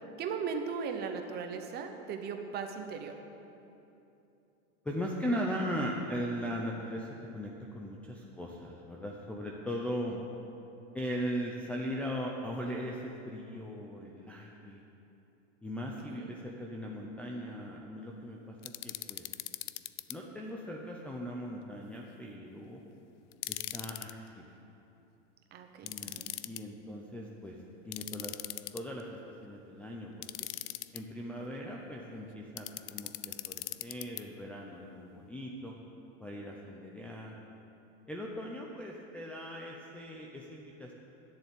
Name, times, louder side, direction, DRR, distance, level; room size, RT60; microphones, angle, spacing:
voice 1, 0.2-3.2 10.1-10.2 16.1-16.3 25.5-26.3, right 6 dB, 25° right, 5 dB, 1.0 m, -38 dB
voice 2, 4.8-10.2 10.9-14.8 15.6-19.2 20.1-22.8 23.5-24.4 25.8-27.6 27.8-28.4 28.7-29.1 29.4-30.5 30.9-35.7 36.2-37.3 38.1-40.9, equal, 5° left, -2 dB, 0.5 m, -39 dB
sound 1, 18.6-20.1 23.3-24.1 25.9-26.6 27.9-29.0 30.2-31.0 32.6-34.2, left 16 dB, 70° left, 0.6 m, -40 dB
12.0 x 7.0 x 9.9 m, 2.9 s
supercardioid pair, 145°, 38 cm